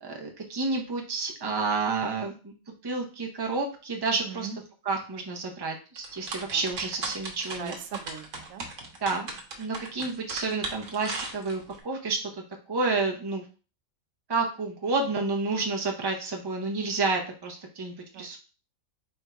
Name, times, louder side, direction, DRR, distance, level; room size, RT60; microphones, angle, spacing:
voice 1, 0.0-2.5 2.8-4.5 4.8-7.7 9.0-9.3 9.6-12.3 12.7-13.4 14.3-18.4, right 3 dB, 20° right, 1 dB, 0.7 m, -30 dB
voice 2, 4.3-4.6 6.5-6.6 7.6-8.6 18.1-18.3, right 6 dB, 80° right, 7 dB, 1.1 m, -39 dB
sound 1, 6.0-11.8, right 3 dB, 65° right, 1.4 m, -37 dB
4.4 x 2.7 x 4.5 m, 0.34 s
omnidirectional pair, 1.4 m